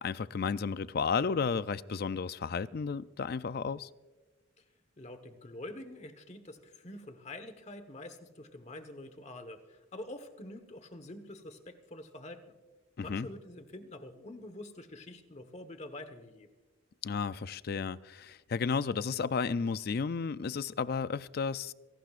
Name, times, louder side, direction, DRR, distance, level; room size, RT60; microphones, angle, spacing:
voice 1, 0.0-3.9 13.0-13.3 17.0-21.7, left 5 dB, 50° left, 0.4 m, -33 dB
voice 2, 5.0-12.5 13.0-16.5, left 1 dB, 35° left, 1.3 m, -46 dB
29.5 x 17.5 x 2.5 m
head